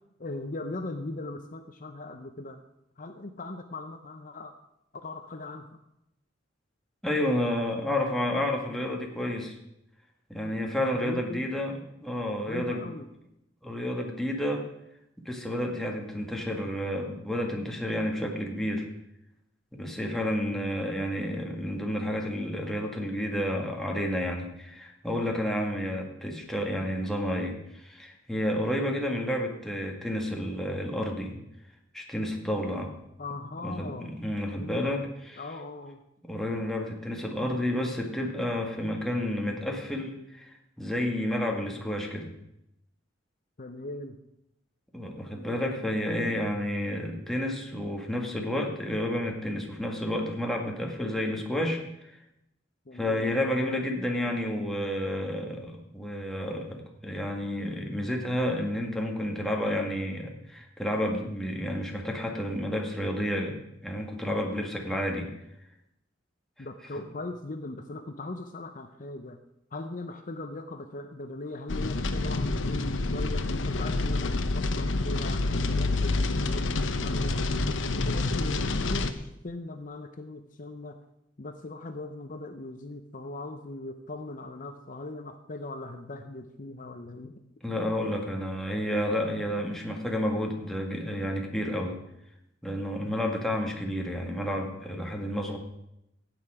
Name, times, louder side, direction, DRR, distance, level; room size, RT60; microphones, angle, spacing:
voice 1, 0.2-2.6 3.0-4.5 5.0-5.8 10.7-11.6 12.5-13.1 33.2-34.1 34.5-35.0 35.4-36.0 43.6-44.2 52.9-53.4 66.6-69.4 69.7-77.4 77.8-81.0 81.4-87.3, left 2 dB, 45° left, 7 dB, 0.8 m, -39 dB
voice 2, 7.0-9.5 10.3-12.8 13.6-14.6 15.2-18.9 19.7-31.4 31.9-32.9 33.6-35.4 36.2-42.3 44.9-52.1 52.9-65.3 87.6-92.0 92.6-95.6, left 1 dB, ahead, 0 dB, 1.9 m, -30 dB
sound 1, 71.7-79.1, left 2 dB, 85° left, 0.9 m, -28 dB
15.5 x 9.0 x 4.9 m, 0.83 s
head